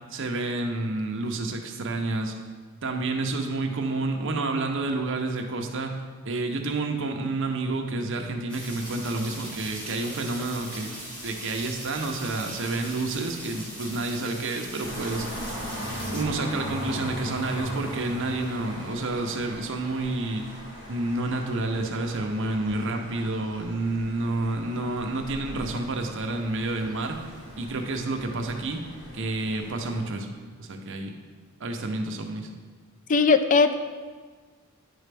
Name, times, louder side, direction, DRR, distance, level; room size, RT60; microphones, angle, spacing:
voice 1, 0.1-2.3 2.8-5.9 6.2-10.9 11.2-15.4 16.1-20.6 20.9-27.2 27.6-28.8 29.1-31.1 31.6-32.5, right 2 dB, 60° right, 3 dB, 0.7 m, -29 dB
sound 1, 8.5-16.2, equal, 20° left, 1.8 m, -40 dB
sound 2, 14.8-30.0, equal, 65° left, 2.0 m, -39 dB
voice 2, 33.1-33.7, left 4 dB, 35° left, 10 dB, 0.3 m, -19 dB
10.0 x 4.1 x 3.4 m, 1.5 s
head